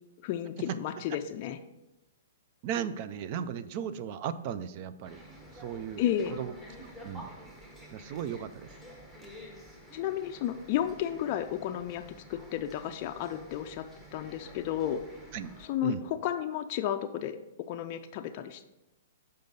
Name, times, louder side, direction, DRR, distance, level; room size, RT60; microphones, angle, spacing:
voice 1, 0.2-1.6 6.0-6.4 9.9-12.0 12.3-13.9 14.1-15.0 15.6-17.4 17.7-18.6, left 11 dB, 40° left, 5 dB, 0.4 m, -32 dB
voice 2, 2.6-5.2 5.6-6.0 6.3-6.5 6.8-7.3 7.9-8.7 15.3-15.5 15.8-16.0, right 8 dB, 40° right, 13 dB, 0.4 m, -36 dB
sound 1, 5.0-15.7, equal, 10° right, 1.1 m, -50 dB
6.8 x 5.3 x 4.0 m, 0.96 s
hypercardioid pair, 150°, 0 cm